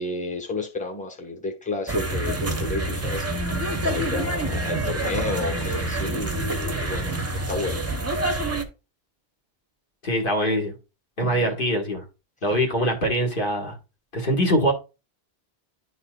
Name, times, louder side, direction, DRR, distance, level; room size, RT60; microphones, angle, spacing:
voice 1, 0.0-7.1 7.5-7.8 11.2-11.5, left 3 dB, 5° left, 1.2 m, -32 dB
sound 1, 1.9-8.6, right 2 dB, 15° right, 0.6 m, -27 dB
voice 2, 10.0-10.7 11.2-12.0 12.4-13.7 14.1-14.7, equal, 55° left, 1.7 m, -23 dB
11.0 x 4.2 x 2.3 m
omnidirectional pair, 1.1 m